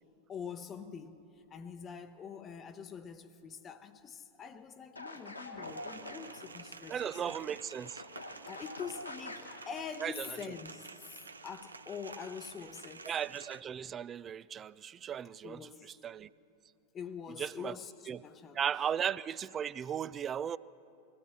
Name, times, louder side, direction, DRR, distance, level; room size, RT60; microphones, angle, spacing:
voice 1, 0.3-1.2 1.5-7.3 8.5-11.2 11.4-13.1 15.4-15.9 16.9-18.6, left 6 dB, 25° left, 0.8 m, -45 dB
sound 1, 5.0-6.5 7.0-9.7, left 1 dB, 85° left, 1.3 m, -46 dB
sound 2, 5.6-13.6, right 4 dB, 75° right, 0.6 m, -51 dB
voice 2, 6.9-8.0 10.0-10.4 13.1-16.3 17.4-17.8 18.1-18.2 18.5-20.6, right 8 dB, 25° right, 0.3 m, -36 dB
22.5 x 16.5 x 7.0 m
figure-of-eight pair, 90°, 0 cm